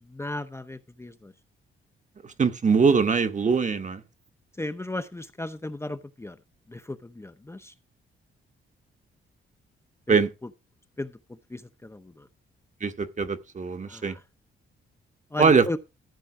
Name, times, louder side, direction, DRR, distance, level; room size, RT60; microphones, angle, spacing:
voice 1, 0.0-1.3 4.5-6.4 6.7-7.7 10.1-10.2 11.0-12.3 13.9-14.2 15.3-15.8, left 2 dB, 10° left, 0.8 m, -36 dB
voice 2, 2.2-4.0 10.1-10.3 12.8-14.2 15.4-15.6, right 5 dB, 35° right, 1.3 m, -22 dB
14.0 x 5.5 x 4.9 m
cardioid pair, 90°, 21 cm